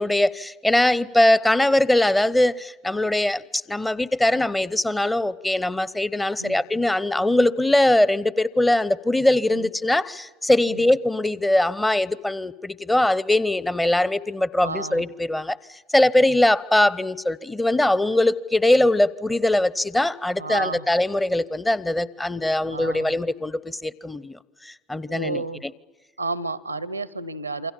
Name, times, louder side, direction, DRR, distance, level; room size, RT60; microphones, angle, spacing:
voice 1, 0.0-25.7, left 1 dB, 10° left, 0.8 m, -21 dB
voice 2, 14.6-15.0 20.4-20.8 22.7-23.1 25.1-25.6 26.2-27.7, right 3 dB, 85° right, 0.7 m, -31 dB
28.0 x 24.5 x 7.4 m
figure-of-eight pair, 70°, 0 cm